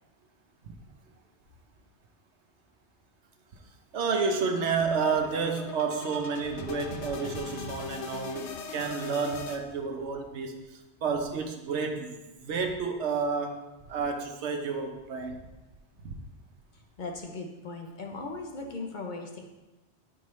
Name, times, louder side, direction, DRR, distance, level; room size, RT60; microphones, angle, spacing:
voice 1, 3.9-15.4 16.0-16.2, right 5 dB, 80° right, 4 dB, 1.1 m, -30 dB
sound 1, 4.5-9.6, left 6 dB, 90° left, 0.9 m, -41 dB
voice 2, 16.7-19.5, left 3 dB, 50° left, 2 dB, 0.7 m, -38 dB
8.8 x 4.5 x 3.1 m, 1.1 s
omnidirectional pair, 1.2 m